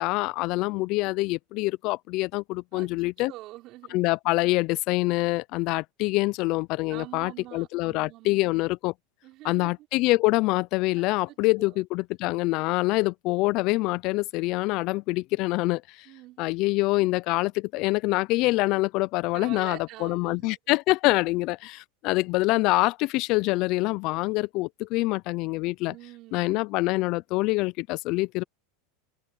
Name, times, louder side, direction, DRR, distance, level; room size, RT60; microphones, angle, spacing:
voice 1, 0.0-3.3 3.9-8.9 9.4-15.8 16.4-25.9 26.3-28.4, left 22 dB, 55° left, 0.5 m, -25 dB
voice 2, 3.3-4.0 6.9-8.7 9.2-9.7 11.0-11.8 16.1-16.4 19.3-20.5 25.9-26.6, right 18 dB, 50° right, 5.6 m, -45 dB
open air
supercardioid pair, 125°, 0 cm